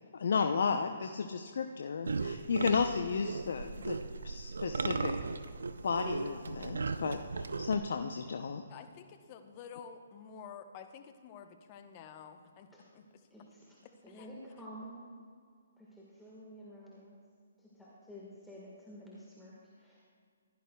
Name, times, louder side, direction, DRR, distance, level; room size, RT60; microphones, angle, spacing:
voice 1, 0.1-4.0 4.2-5.1 5.8-8.6, left 5 dB, 60° left, 5 dB, 0.6 m, -33 dB
sound 1, 2.0-7.8, right 4 dB, 75° right, 0.5 m, -37 dB
voice 2, 8.7-13.0 13.8-14.3, left 7 dB, 35° left, 7 dB, 0.8 m, -50 dB
voice 3, 13.3-13.8 14.0-15.1 15.8-17.2 17.6-20.1, equal, 5° left, -6 dB, 1.5 m, -50 dB
15.5 x 11.0 x 2.3 m, 2.1 s
figure-of-eight pair, 140°, 0 cm